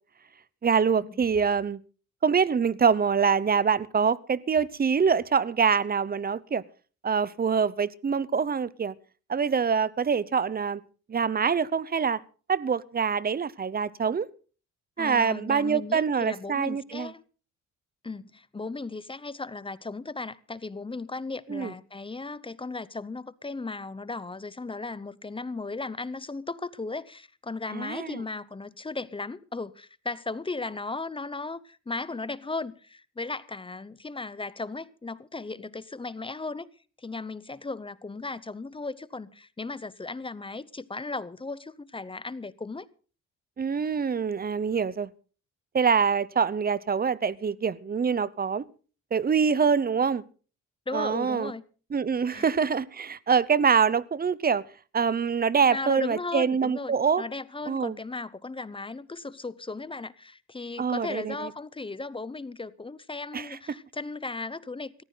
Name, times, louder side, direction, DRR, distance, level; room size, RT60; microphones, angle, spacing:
voice 1, 0.6-1.8 2.2-6.6 7.0-8.9 9.3-10.8 11.1-12.2 12.5-14.3 15.0-17.1 21.5-21.7 27.7-28.2 43.6-45.1 45.7-48.6 49.1-50.2 50.9-51.5 51.9-54.6 54.9-57.2 57.7-58.0 60.8-61.5 63.3-63.6, right 6 dB, 30° right, 0.8 m, -25 dB
voice 2, 15.0-17.2 18.0-36.7 37.0-42.9 50.9-51.6 52.3-52.5 55.7-65.0, left 3 dB, 15° left, 0.8 m, -36 dB
17.5 x 14.5 x 4.0 m
cardioid pair, 90°, 30 cm